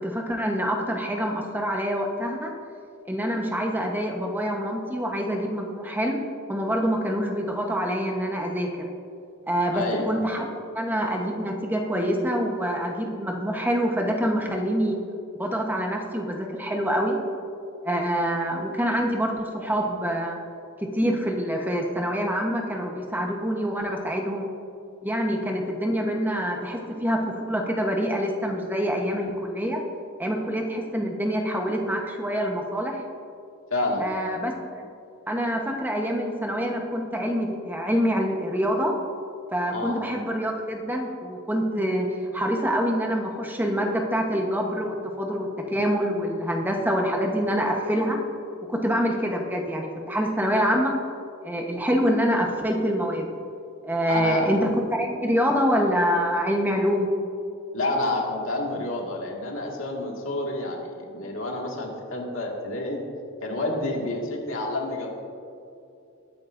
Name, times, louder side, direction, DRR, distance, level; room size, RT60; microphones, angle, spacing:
voice 1, 0.0-2.5 3.1-6.2 6.5-8.9 9.5-10.5 10.7-15.0 15.4-17.2 17.8-20.4 20.8-24.5 25.0-29.8 30.2-33.1 34.0-34.8 35.3-38.9 39.5-42.1 42.3-48.2 48.7-50.9 51.4-53.3 53.8-57.1, equal, 10° right, 1 dB, 1.1 m, -26 dB
voice 2, 9.7-10.1 33.7-34.1 39.7-40.0 54.1-54.5 57.7-63.0 63.4-65.1, left 2 dB, 75° left, -1 dB, 2.0 m, -29 dB
19.5 x 9.3 x 2.6 m, 2.6 s
head